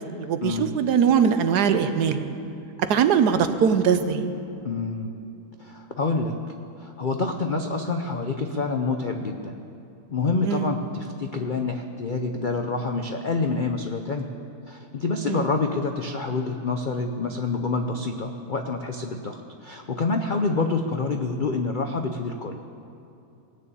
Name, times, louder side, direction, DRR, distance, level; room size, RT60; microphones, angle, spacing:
voice 1, 0.0-2.2 2.9-4.3 10.4-10.7 15.3-15.4, right 7 dB, 70° right, 9 dB, 1.3 m, -21 dB
voice 2, 4.6-5.1 5.6-6.3 6.8-9.5 10.1-14.3 14.7-22.6, left 3 dB, 85° left, 4 dB, 0.4 m, -27 dB
19.0 x 7.0 x 8.4 m, 2.8 s
omnidirectional pair, 1.9 m